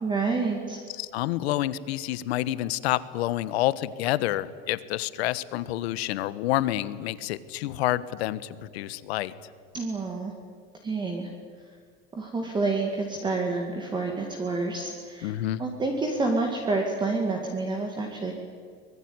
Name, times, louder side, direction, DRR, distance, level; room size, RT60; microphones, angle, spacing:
voice 1, 0.0-0.8 9.7-10.3 10.8-11.3 12.1-15.3 15.6-18.3, right 3 dB, 15° right, 1 dB, 2.3 m, -28 dB
voice 2, 1.0-9.3 15.2-15.6, left 14 dB, 75° left, 16 dB, 1.4 m, -28 dB
24.0 x 21.0 x 9.7 m, 2.1 s
supercardioid pair, 165°, 32 cm